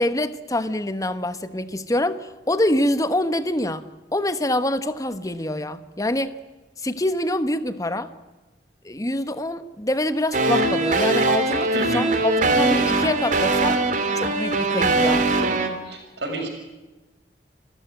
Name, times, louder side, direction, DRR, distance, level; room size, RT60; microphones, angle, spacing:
voice 1, 0.0-6.3 6.8-8.1 8.8-13.8 14.1-15.3, left 1 dB, 20° left, 11 dB, 1.1 m, -25 dB
sound 1, 10.3-15.7, right 2 dB, 45° right, 2.8 m, -21 dB
voice 2, 11.7-12.1 15.8-16.5, right 1 dB, 75° right, 2 dB, 6.6 m, -29 dB
28.5 x 14.0 x 9.1 m, 1.1 s
head